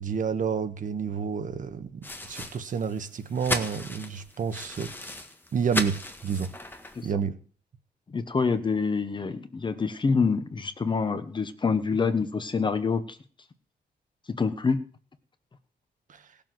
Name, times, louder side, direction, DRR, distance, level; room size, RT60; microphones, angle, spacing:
voice 1, 0.0-4.9 5.5-6.0 6.2-6.5 7.0-7.4 16.1-16.2, right 6 dB, 50° right, 9 dB, 1.5 m, -29 dB
Plastic Bag Drops, 2.0-7.1, left 1 dB, 10° left, 1.6 m, -36 dB
voice 2, 8.1-13.2 14.3-14.8, left 5 dB, 30° left, 11 dB, 1.1 m, -26 dB
18.0 x 7.1 x 7.7 m, 0.44 s
wide cardioid pair, 150°, 17 cm